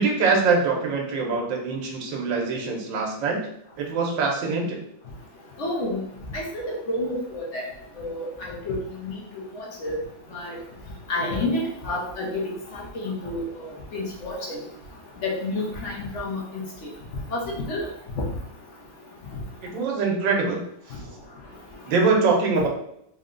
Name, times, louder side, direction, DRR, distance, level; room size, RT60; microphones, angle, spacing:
voice 1, 0.0-3.4 3.8-4.8 19.6-20.6 20.9-21.0 21.9-22.7, right 4 dB, 85° right, 0 dB, 1.5 m, -23 dB
voice 2, 5.6-6.0 6.3-7.7 8.0-8.8 9.0-9.1 9.6-10.0 10.3-10.5 11.1-13.4 13.9-14.6 15.2-16.9 17.3-17.9, left 2 dB, 55° left, -2 dB, 0.8 m, -29 dB
3.8 x 2.2 x 3.7 m, 0.74 s
omnidirectional pair, 2.0 m